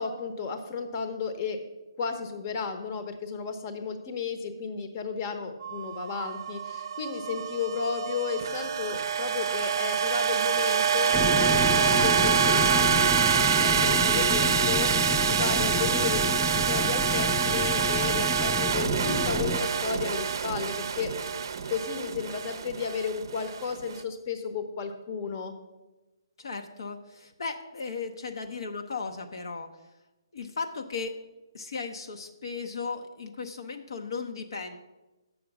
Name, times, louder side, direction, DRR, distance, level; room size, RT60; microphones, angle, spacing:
voice 1, 0.0-1.6 2.0-21.1 21.4-25.5, left 5 dB, 35° left, 8 dB, 0.9 m, -33 dB
sound 1, 5.6-23.9, right 8 dB, 55° right, 0.5 m, -26 dB
sound 2, 11.1-19.6, left 4 dB, 5° left, 0.3 m, -31 dB
voice 2, 26.4-29.7 30.3-31.2 31.5-34.8, left 4 dB, 70° left, 5 dB, 0.8 m, -36 dB
7.7 x 6.6 x 5.9 m, 1.1 s
hypercardioid pair, 150°, 2 cm